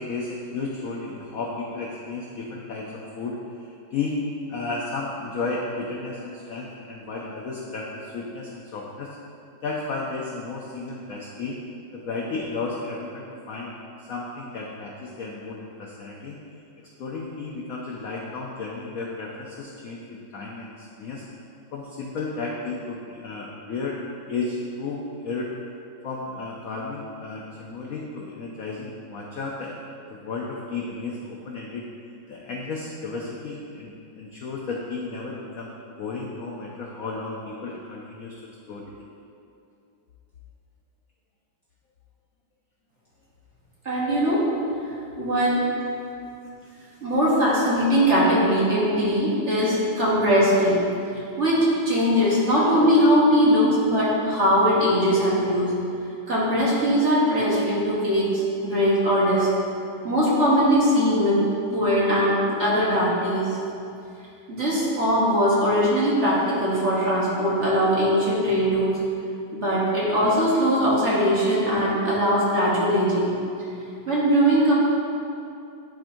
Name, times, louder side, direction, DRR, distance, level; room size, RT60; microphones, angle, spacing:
voice 1, 0.0-4.2 4.5-9.1 9.6-11.6 11.9-13.7 14.1-16.4 17.0-21.2 21.7-24.0 24.3-25.5 26.0-29.8 30.1-31.8 32.3-35.7 36.0-38.3 38.7-38.9, left 3 dB, 85° left, -2 dB, 0.7 m, -33 dB
voice 2, 43.8-44.5 45.2-45.6 47.0-50.8 51.1-55.7 56.3-59.5 60.0-61.4 61.7-63.6 64.5-68.9 69.5-73.3 74.1-74.7, equal, 45° right, -7 dB, 1.2 m, -21 dB
11.0 x 4.4 x 2.6 m, 2.6 s
omnidirectional pair, 2.2 m